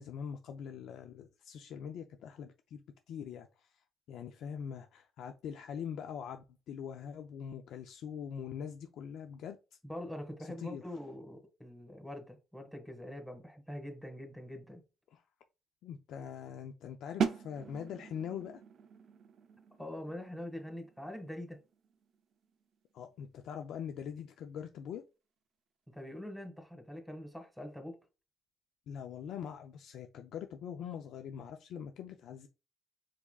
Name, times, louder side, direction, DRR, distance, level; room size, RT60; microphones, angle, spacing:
voice 1, 0.0-2.8 3.1-3.7 4.1-9.6 10.4-10.8 15.1-15.2 15.8-18.6 22.9-25.0 28.9-32.5, left 8 dB, 80° left, 0.4 m, -43 dB
voice 2, 9.8-14.8 19.8-21.6 25.9-28.0, left 1 dB, ahead, 1.5 m, -44 dB
sound 1, 17.2-22.9, right 6 dB, 60° right, 0.5 m, -40 dB
4.8 x 4.1 x 2.3 m
cardioid pair, 90°, 0 cm